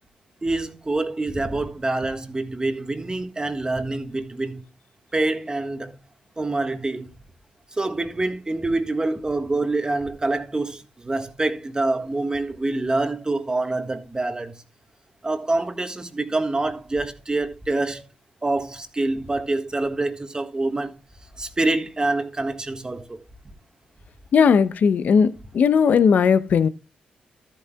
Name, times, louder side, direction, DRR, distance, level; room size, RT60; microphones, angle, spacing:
voice 1, 0.4-4.6 5.1-6.0 6.4-7.1 7.7-14.6 15.2-18.0 18.4-20.9 21.4-23.2, right 2 dB, 25° right, 1.6 m, -26 dB
voice 2, 24.3-26.7, left 6 dB, 65° left, 0.8 m, -17 dB
13.5 x 8.8 x 2.3 m
hypercardioid pair, 45°, 3 cm